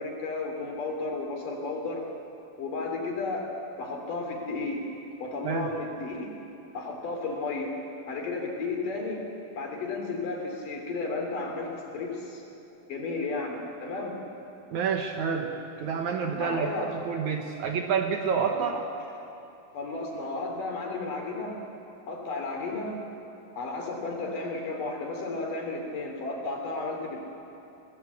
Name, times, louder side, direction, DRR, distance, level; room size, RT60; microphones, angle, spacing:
voice 1, 0.0-2.1 2.6-3.4 3.8-4.8 5.2-6.3 6.7-7.7 8.1-9.2 9.6-12.4 12.9-14.2 16.3-17.0 18.5-18.7 19.7-21.6 22.1-23.0 23.6-27.2, left 3 dB, 60° left, 1 dB, 4.6 m, -33 dB
voice 2, 14.7-18.8, right 6 dB, 65° right, 3 dB, 2.1 m, -28 dB
24.5 x 18.0 x 8.3 m, 2.9 s
omnidirectional pair, 4.2 m